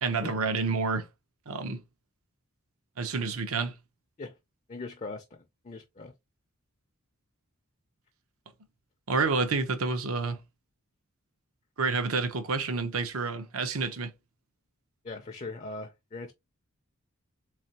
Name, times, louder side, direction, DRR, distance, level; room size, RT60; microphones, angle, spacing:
voice 1, 0.0-1.1 1.5-1.8 3.0-3.7 9.1-10.4 11.8-14.1, right 4 dB, 70° right, 0.7 m, -29 dB
voice 2, 4.7-6.1 15.0-16.3, left 3 dB, 30° left, 0.4 m, -40 dB
3.6 x 3.3 x 2.8 m
head